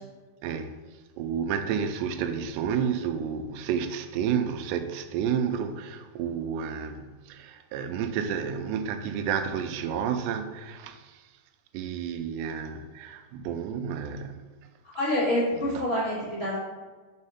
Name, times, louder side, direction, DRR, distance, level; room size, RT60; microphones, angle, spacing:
voice 1, 0.4-0.7 1.2-11.2 11.7-14.4 15.8-15.9, right 7 dB, 90° right, 2.7 m, -30 dB
voice 2, 14.9-16.6, left 1 dB, 30° left, 1.1 m, -26 dB
5.3 x 4.9 x 5.6 m
omnidirectional pair, 4.8 m